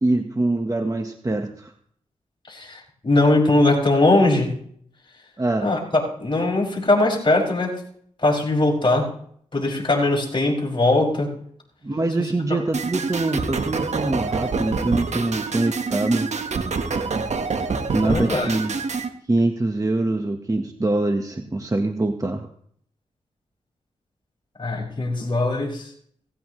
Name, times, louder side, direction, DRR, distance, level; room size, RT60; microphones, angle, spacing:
voice 1, 0.0-1.7 5.4-5.7 11.8-16.3 17.9-18.8 19.3-22.5, right 2 dB, 25° right, 5 dB, 1.4 m, -24 dB
voice 2, 2.5-4.5 5.6-7.8 8.2-9.1 9.5-11.3 12.2-12.3 18.0-18.5 24.6-25.9, left 2 dB, 40° left, -2 dB, 6.6 m, -20 dB
sound 1, 12.7-19.1, right 4 dB, 65° right, 1.5 m, -26 dB
18.0 x 16.0 x 3.3 m, 0.66 s
cardioid pair, 45°, 13 cm